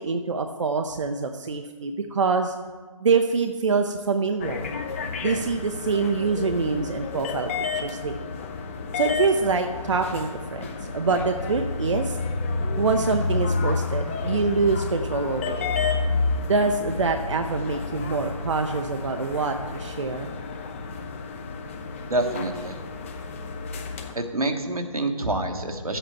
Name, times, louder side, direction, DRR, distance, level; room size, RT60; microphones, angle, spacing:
voice 1, 0.0-2.5 3.0-4.7 5.2-8.3 8.9-12.2 12.8-15.7 16.4-20.3, right 4 dB, 55° right, 6 dB, 0.6 m, -25 dB
sound 1, 4.4-24.1, left 4 dB, 20° left, 0.7 m, -30 dB
voice 2, 22.1-22.8 24.1-26.0, right 2 dB, 85° right, 5 dB, 1.3 m, -27 dB
12.0 x 7.9 x 4.6 m, 1.5 s
figure-of-eight pair, 150°, 18 cm